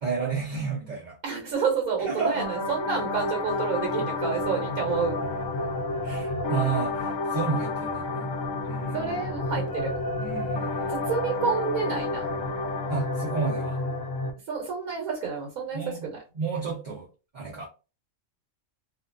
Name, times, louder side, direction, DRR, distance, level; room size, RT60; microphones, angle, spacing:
voice 1, 0.0-1.1 2.0-2.4 6.0-8.3 8.6-9.2 10.2-11.1 12.9-13.8 15.7-16.1 16.4-17.1 17.3-17.7, right 5 dB, 45° right, -5 dB, 0.6 m, -31 dB
voice 2, 1.2-5.2 8.9-9.9 10.9-12.3 14.5-16.2, right 5 dB, 80° right, 1 dB, 1.2 m, -29 dB
sound 1, 2.3-14.3, left 2 dB, 70° left, 0.9 m, -30 dB
2.6 x 2.2 x 2.5 m, 0.33 s
omnidirectional pair, 1.5 m